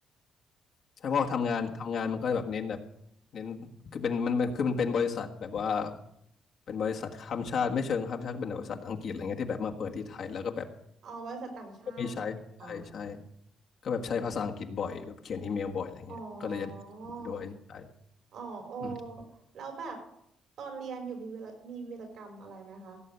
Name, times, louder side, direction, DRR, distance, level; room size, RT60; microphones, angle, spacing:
voice 1, 1.0-2.8 3.3-6.0 6.7-10.7 12.0-13.2 13.8-16.1 16.4-16.7 17.2-17.9 18.8-18.9, left 6 dB, 65° left, 2 dB, 1.5 m, -32 dB
voice 2, 11.0-12.1 12.6-12.9 16.1-17.4 18.3-19.3 19.5-20.0 20.6-23.0, right 4 dB, 70° right, 4 dB, 4.9 m, -41 dB
16.5 x 7.5 x 6.8 m, 0.75 s
cardioid pair, 90°, 0 cm